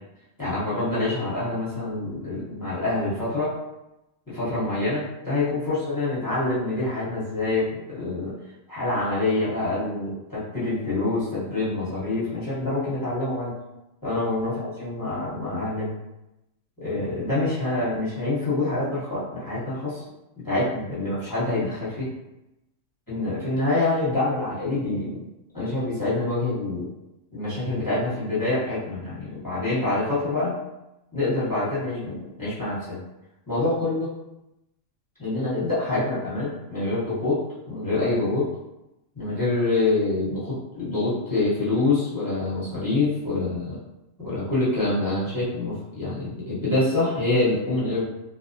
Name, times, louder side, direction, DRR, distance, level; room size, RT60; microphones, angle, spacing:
voice 1, 0.4-3.5 4.3-8.3 8.7-13.5 14.0-15.9 16.8-20.0 20.4-22.1 23.1-25.3 25.5-26.9 27.3-30.5 31.1-33.0 33.5-34.1 35.2-38.5 39.1-43.8 44.2-48.0, left 2 dB, 20° left, -11 dB, 0.9 m, -26 dB
2.5 x 2.0 x 2.5 m, 0.92 s
omnidirectional pair, 1.3 m